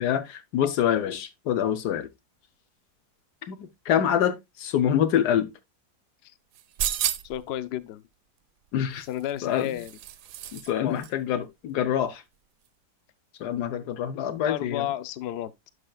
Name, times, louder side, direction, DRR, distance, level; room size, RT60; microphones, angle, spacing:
voice 1, 0.0-2.1 3.5-5.5 8.7-9.0 9.4-9.7 10.5-12.2 13.4-14.9, left 10 dB, 85° left, 1.4 m, -26 dB
sound 1, 6.5-7.5 9.0-10.7 11.0-11.1, right 11 dB, 90° right, 1.2 m, -32 dB
voice 2, 7.2-8.0 9.1-9.9 10.7-11.0 14.4-15.7, left 12 dB, 65° left, 0.6 m, -32 dB
11.5 x 5.1 x 2.3 m
omnidirectional pair, 1.7 m